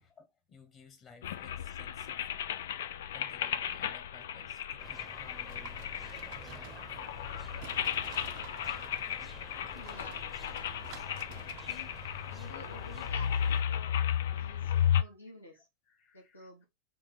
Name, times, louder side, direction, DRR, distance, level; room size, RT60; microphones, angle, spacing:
voice 1, 0.0-2.6 3.1-5.8 6.2-6.9 15.5-16.6, left 5 dB, 30° left, 1.0 m, -58 dB
sound 1, 1.2-15.0, left 9 dB, 60° left, 0.3 m, -34 dB
sound 2, 4.8-13.6, right 2 dB, 5° right, 0.7 m, -51 dB
sound 3, 5.4-7.3 7.6-12.1, right 9 dB, 45° right, 0.6 m, -52 dB
voice 2, 9.7-10.8 11.6-12.0 12.3-14.0 14.3-15.7 16.1-16.6, left 2 dB, 85° left, 1.5 m, -52 dB
3.7 x 2.8 x 4.0 m
figure-of-eight pair, 90°, 0 cm